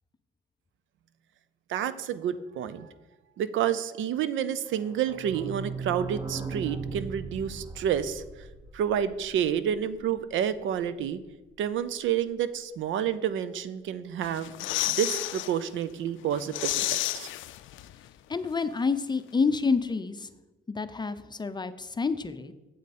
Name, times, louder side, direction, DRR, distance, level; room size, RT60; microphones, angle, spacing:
voice 1, 1.7-2.9 3.4-8.2 8.7-11.2 11.6-14.5 14.9-17.3, right 9 dB, 75° right, 14 dB, 0.6 m, -29 dB
sound 1, 4.7-10.2 10.5-10.6 10.8-10.9 11.2-11.3, right 5 dB, 15° right, 1.0 m, -38 dB
sound 2, 14.2-15.5 15.9-16.0 16.3-18.1 18.3-18.4, left 15 dB, 75° left, 0.4 m, -31 dB
voice 2, 18.3-20.3 20.7-22.5, left 4 dB, 20° left, 11 dB, 0.6 m, -28 dB
8.3 x 7.7 x 4.2 m, 1.1 s
cardioid pair, 90°, 20 cm